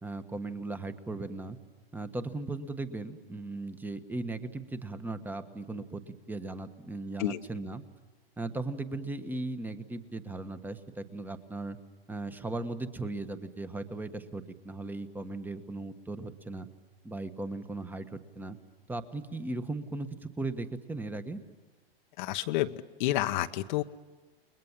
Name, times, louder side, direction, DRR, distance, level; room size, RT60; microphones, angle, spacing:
voice 1, 0.0-1.6 1.9-7.8 8.4-11.8 12.1-16.7 17.0-18.6 18.9-21.4, right 2 dB, 5° right, 10 dB, 1.3 m, -37 dB
voice 2, 22.2-22.7 23.0-23.8, left 15 dB, 50° left, 8 dB, 1.0 m, -29 dB
29.5 x 21.5 x 7.3 m, 1.3 s
hypercardioid pair, 130°, 30 cm